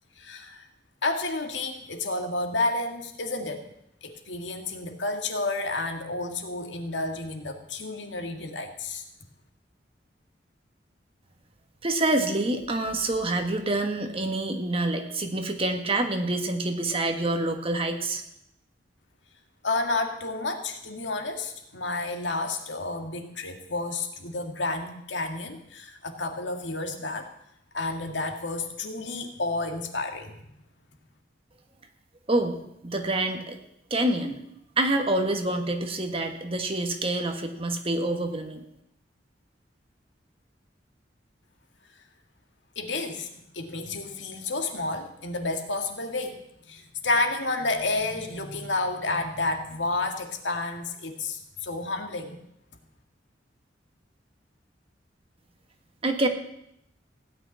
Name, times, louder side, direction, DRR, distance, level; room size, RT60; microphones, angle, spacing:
voice 1, 0.2-0.7 1.0-3.7 4.0-9.0 19.6-27.3 27.7-30.4 42.8-46.4 46.7-52.4, left 2 dB, 90° left, 5 dB, 2.0 m, -30 dB
voice 2, 11.8-18.2 32.3-33.6 33.9-34.4 34.8-38.6 56.0-56.3, right 2 dB, 30° right, 5 dB, 1.6 m, -27 dB
16.5 x 6.1 x 9.6 m, 0.78 s
head